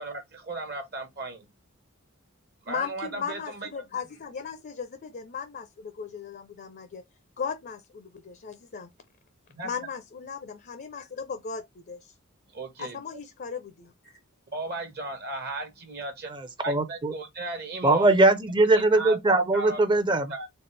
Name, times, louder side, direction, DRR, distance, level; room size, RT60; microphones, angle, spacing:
voice 1, 0.0-1.5 2.7-3.7 9.5-9.7 12.5-13.0 14.5-16.3 16.6-18.1 18.7-19.8 20.3-20.5, right 3 dB, 50° right, 1.0 m, -36 dB
voice 2, 2.7-7.0 7.4-8.9 9.6-12.1 12.8-14.2, left 6 dB, 45° left, 0.5 m, -37 dB
voice 3, 16.3-17.1 17.8-20.3, right 2 dB, 20° right, 0.6 m, -21 dB
4.2 x 2.4 x 3.2 m
head